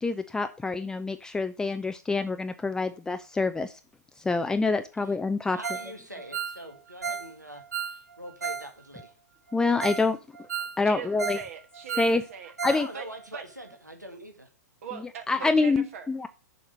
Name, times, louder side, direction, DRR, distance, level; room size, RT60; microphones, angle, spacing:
voice 1, 0.0-3.8 4.2-5.6 9.5-10.2 10.8-11.4 12.0-12.2 12.6-12.9 15.3-16.3, left 3 dB, 5° left, 9 dB, 0.4 m, -26 dB
voice 2, 5.5-9.1 12.7-14.5, right 1 dB, 90° right, 4 dB, 1.9 m, -43 dB
Ringtone, 5.6-5.9 6.2-8.7 9.0-9.1 9.5-9.6 9.8-10.1 10.4-11.5 11.7-12.9 13.1-13.2 13.7-13.8, right 7 dB, 70° right, 1.1 m, -34 dB
voice 3, 10.8-12.5 12.9-13.1 13.3-13.4 14.8-16.3, right 7 dB, 55° right, 5 dB, 1.6 m, -41 dB
7.1 x 5.7 x 6.4 m, 0.34 s
figure-of-eight pair, 105°, 9 cm